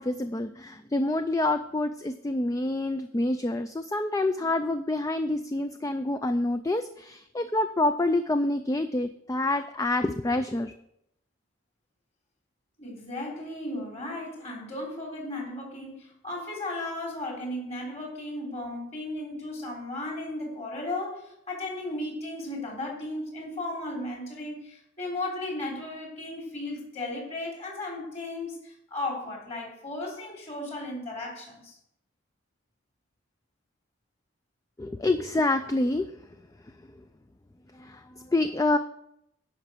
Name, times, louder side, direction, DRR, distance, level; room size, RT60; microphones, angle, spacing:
voice 1, 0.0-10.7 34.8-36.2 37.7-38.8, left 2 dB, 15° left, 9 dB, 0.3 m, -27 dB
voice 2, 12.8-31.8, left 2 dB, 35° left, -1 dB, 3.2 m, -35 dB
11.0 x 5.6 x 6.7 m, 0.77 s
head